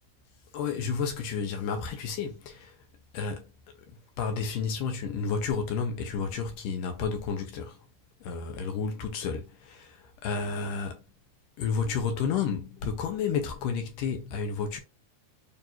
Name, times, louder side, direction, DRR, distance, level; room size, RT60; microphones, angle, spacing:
voice 1, 0.5-2.8 3.1-3.5 3.9-7.9 8.2-11.0 11.6-14.8, left 5 dB, 75° left, 2.1 m, -31 dB
7.0 x 2.6 x 2.9 m
omnidirectional pair, 4.4 m